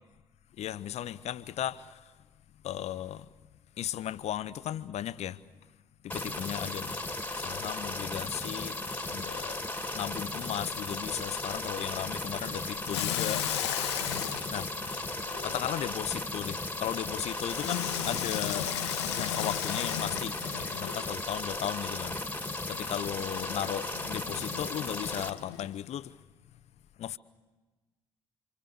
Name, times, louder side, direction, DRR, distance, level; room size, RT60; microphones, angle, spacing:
voice 1, 0.6-2.0 2.6-3.2 3.8-5.4 6.1-7.0 7.4-8.8 9.1-9.6 9.9-13.4 14.5-15.0 15.4-18.7 19.1-22.2 22.7-26.1 27.0-27.2, left 11 dB, 45° left, 0.7 m, -36 dB
sound 1, 6.1-25.3, left 2 dB, 10° left, 2.1 m, -36 dB
Water tap faucet / Sink (filling or washing), 12.9-15.9 17.5-21.2 23.2-25.7, left 12 dB, 70° left, 1.0 m, -35 dB
27.5 x 26.0 x 6.9 m
figure-of-eight pair, 45°, 15 cm